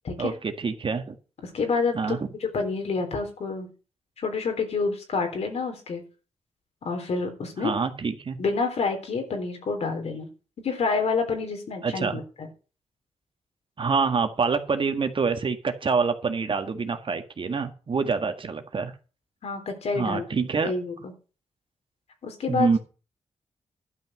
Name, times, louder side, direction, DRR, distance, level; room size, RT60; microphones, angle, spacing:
voice 1, 0.2-1.2 1.9-2.2 7.6-8.4 11.8-12.2 13.8-18.9 19.9-20.7 22.5-22.8, right 5 dB, 50° right, 7 dB, 1.8 m, -26 dB
voice 2, 1.4-3.7 4.2-6.0 6.8-7.7 8.4-10.3 10.6-12.5 19.4-21.1 22.2-22.7, left 4 dB, 70° left, 4 dB, 3.7 m, -28 dB
12.0 x 5.7 x 7.5 m, 0.35 s
cardioid pair, 65°, 11 cm